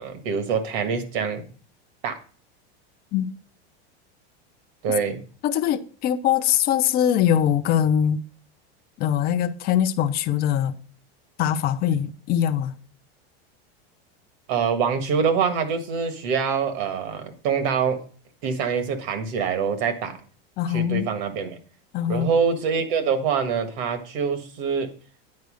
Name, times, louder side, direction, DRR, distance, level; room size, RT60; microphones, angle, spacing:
voice 1, 0.0-1.5 2.0-2.2 4.8-5.2 14.5-18.0 18.4-20.2 20.7-21.6 22.1-24.9, right 6 dB, 55° right, 1.7 m, -25 dB
voice 2, 5.4-8.2 9.0-10.7 11.4-12.7 20.6-21.1 21.9-22.3, left 10 dB, 30° left, 0.6 m, -22 dB
9.5 x 4.7 x 6.3 m
supercardioid pair, 155°, 31 cm